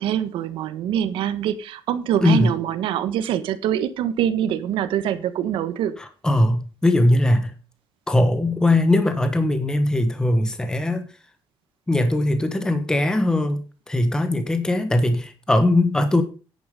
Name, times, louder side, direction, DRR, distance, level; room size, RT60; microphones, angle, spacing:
voice 1, 0.0-6.0, right 10 dB, 85° right, 1.4 m, -24 dB
voice 2, 2.2-2.5 6.0-7.5 8.1-11.1 11.9-16.2, left 1 dB, 10° left, 1.2 m, -20 dB
10.5 x 8.9 x 5.1 m
cardioid pair, 160°, 9 cm